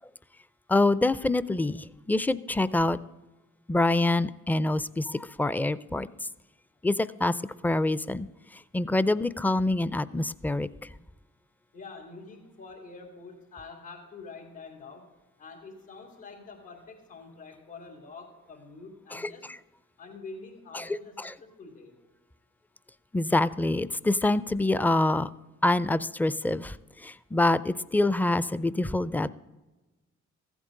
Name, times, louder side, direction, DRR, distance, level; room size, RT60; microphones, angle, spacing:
voice 1, 0.7-3.0 3.7-6.1 6.8-8.3 8.7-10.7 19.1-19.3 20.7-21.3 23.1-25.3 25.6-29.3, left 2 dB, 5° left, 17 dB, 0.4 m, -26 dB
voice 2, 11.7-15.1 15.4-19.5 20.0-22.0, left 4 dB, 90° left, -3 dB, 3.1 m, -46 dB
14.5 x 8.2 x 3.8 m, 1.2 s
supercardioid pair, 50°, 32 cm